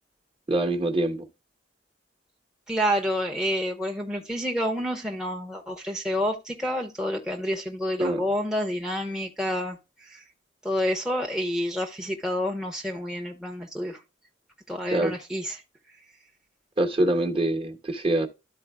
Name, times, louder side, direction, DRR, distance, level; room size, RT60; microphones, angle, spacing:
voice 1, 0.5-1.2 8.0-8.2 14.9-15.1 16.8-18.3, right 1 dB, 30° right, 1.1 m, -24 dB
voice 2, 2.7-10.2 10.6-14.0 14.7-15.6, equal, 5° right, 0.8 m, -29 dB
13.0 x 4.4 x 2.2 m
head